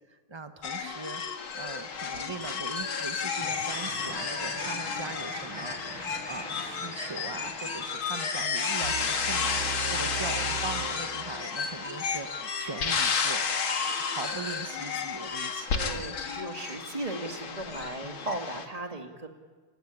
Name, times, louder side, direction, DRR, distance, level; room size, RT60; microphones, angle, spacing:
voice 1, 0.0-5.8 6.3-13.4 13.7-16.2 18.0-18.3, right 3 dB, 40° right, 7 dB, 0.4 m, -41 dB
sound 1, 0.6-18.7, left 5 dB, 70° left, 2.7 m, -32 dB
sound 2, 3.4-8.8, right 1 dB, 65° right, 8.2 m, -43 dB
sound 3, 8.8-11.8, right 10 dB, 90° right, 2.0 m, -38 dB
voice 2, 15.7-19.3, right 2 dB, 15° right, 4 dB, 2.1 m, -37 dB
28.5 x 16.5 x 10.0 m, 1.4 s
omnidirectional pair, 2.3 m